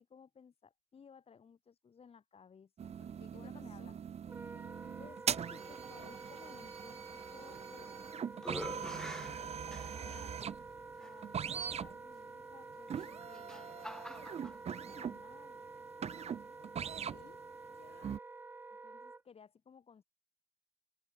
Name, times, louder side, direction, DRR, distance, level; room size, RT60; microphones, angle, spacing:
voice 1, 0.0-3.0 3.3-3.9 5.0-7.9 8.3-10.4 11.0-13.9 14.2-15.6 18.7-20.0, left 6 dB, 35° left, 4.7 m, -59 dB
sound 1, 2.8-17.4 17.7-18.2, right 8 dB, 40° right, 1.1 m, -42 dB
voice 2, 3.0-4.0 16.6-17.4 17.7-18.2, left 16 dB, 80° left, 5.5 m, -61 dB
Wind instrument woodwind instrument, 4.3-19.2, right 3 dB, 10° right, 0.4 m, -50 dB
sound 2, 7.5-8.0 8.4-10.2 11.0-11.1 12.9-14.6, left 1 dB, 5° left, 3.2 m, -46 dB
cardioid pair, 110°, 17 cm